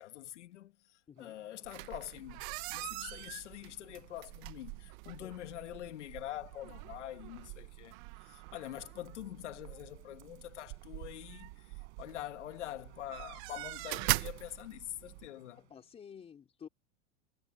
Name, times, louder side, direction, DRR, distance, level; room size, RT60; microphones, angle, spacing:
voice 1, 0.0-8.0 8.2-15.6, left 14 dB, 90° left, 2.0 m, -45 dB
voice 2, 1.1-1.4 5.0-5.3 15.6-16.7, left 7 dB, 15° left, 3.9 m, -52 dB
sound 1, 1.2-16.0, right 17 dB, 65° right, 4.7 m, -65 dB
sound 2, 1.6-15.3, right 22 dB, 45° right, 0.9 m, -42 dB
supercardioid pair, 155°, 35 cm